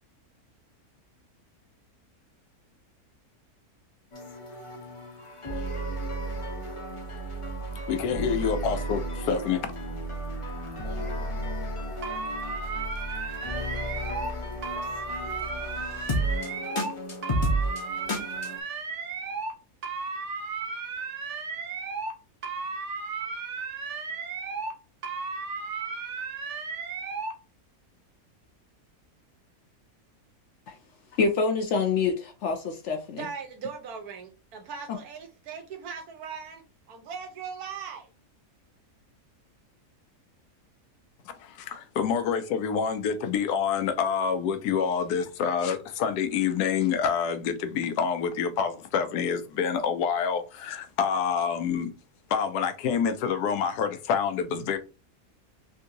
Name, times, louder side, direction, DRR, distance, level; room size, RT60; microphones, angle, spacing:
sound 1, 4.1-18.6, right 1 dB, 35° left, 0.5 m, -33 dB
voice 1, 7.9-9.7 41.4-51.9 52.3-54.8, left 7 dB, 90° left, 1.2 m, -27 dB
sound 2, 12.0-14.3 14.6-16.9 17.2-19.5 19.8-22.2 22.4-24.8 25.0-27.4, right 4 dB, 60° right, 0.8 m, -34 dB
voice 2, 31.2-33.3, left 4 dB, 65° left, 0.7 m, -26 dB
voice 3, 33.2-38.1, right 6 dB, 80° right, 1.4 m, -39 dB
3.6 x 2.7 x 2.7 m
omnidirectional pair, 1.6 m